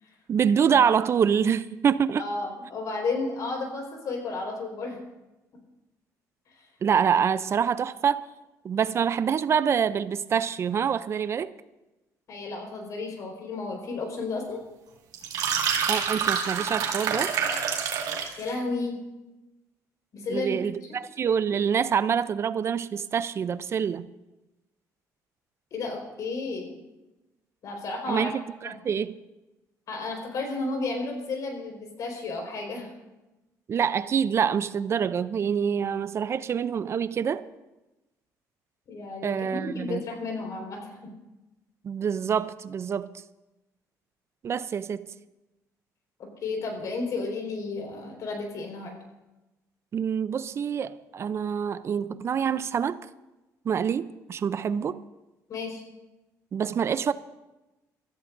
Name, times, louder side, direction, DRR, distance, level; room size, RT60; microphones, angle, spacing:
voice 1, 0.3-2.2 6.8-8.2 8.6-11.5 15.9-17.3 20.3-24.1 28.1-29.1 33.7-37.4 39.2-40.0 41.8-43.1 44.4-45.1 49.9-53.0 53.6-55.0 56.5-57.1, right 7 dB, 40° right, 0.5 m, -26 dB
voice 2, 2.2-5.0 6.5-6.7 12.3-14.6 18.4-19.0 20.1-21.0 25.7-26.8 27.6-28.3 28.6-28.7 29.9-32.9 38.9-40.9 46.4-49.0 55.5-55.8, left 3 dB, 60° left, 4.6 m, -32 dB
sound 1, 15.1-18.4, right 7 dB, 70° right, 2.4 m, -27 dB
25.0 x 14.0 x 2.6 m
cardioid pair, 105°, 7 cm